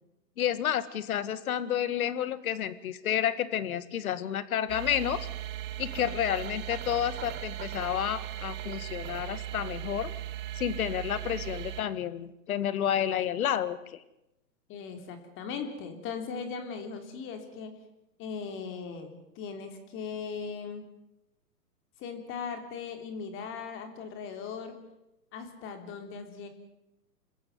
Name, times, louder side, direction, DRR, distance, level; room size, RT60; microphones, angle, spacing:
voice 1, 0.4-5.3 5.8-10.1 10.6-14.0, left 10 dB, 60° left, 14 dB, 2.0 m, -30 dB
sound 1, 4.7-11.8, right 13 dB, 20° right, 1.5 m, -38 dB
voice 2, 14.7-17.7 18.2-20.9 22.0-24.8 25.3-26.5, left 5 dB, 25° left, 6 dB, 3.4 m, -38 dB
28.0 x 15.0 x 9.5 m, 0.92 s
hypercardioid pair, 140°, 49 cm